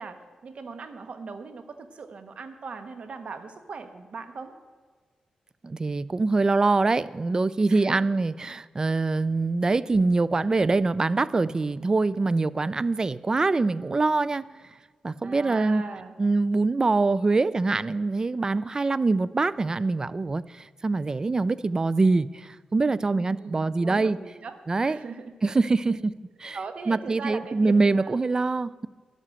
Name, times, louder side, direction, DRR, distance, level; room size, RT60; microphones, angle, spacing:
voice 1, 0.0-4.5 7.7-8.1 15.2-16.1 23.0-24.6 24.8-26.0 26.5-28.2, right 4 dB, 60° right, 8 dB, 1.1 m, -40 dB
voice 2, 5.6-14.5 15.0-15.8 16.2-24.2 24.7-25.0 25.4-26.0 26.4-26.6 26.9-28.9, right 3 dB, 30° right, 18 dB, 0.4 m, -24 dB
11.0 x 7.4 x 7.6 m, 1.5 s
cardioid pair, 80°, 2 cm